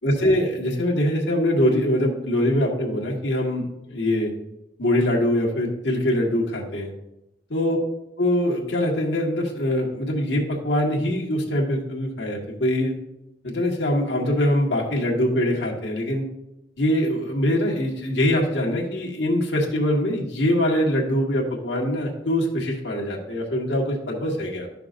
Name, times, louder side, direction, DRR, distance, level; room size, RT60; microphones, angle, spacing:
voice 1, 0.0-4.3 4.8-6.9 7.5-7.8 8.2-12.9 13.4-16.3 16.8-24.7, left 1 dB, 80° left, -2 dB, 1.6 m, -23 dB
12.5 x 5.9 x 2.6 m, 0.91 s
head